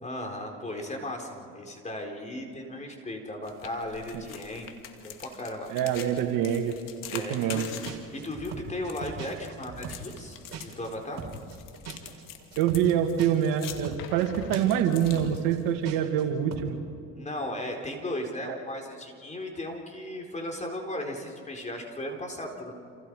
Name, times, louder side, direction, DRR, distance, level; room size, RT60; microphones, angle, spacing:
voice 1, 0.0-5.7 7.1-7.7 8.1-11.2 17.2-22.7, left 1 dB, 20° left, 2 dB, 4.4 m, -36 dB
sound 1, 3.4-15.9, left 9 dB, 70° left, 2.5 m, -45 dB
voice 2, 5.7-6.8 7.1-7.7 12.6-16.8 18.4-18.6, right 9 dB, 80° right, 5 dB, 2.1 m, -26 dB
sound 2, 7.5-7.6 7.8-10.9 11.2-16.2 16.5-16.7, right 5 dB, 50° right, 4.5 m, -40 dB
28.5 x 28.5 x 4.9 m, 2.5 s
supercardioid pair, 90°, 33 cm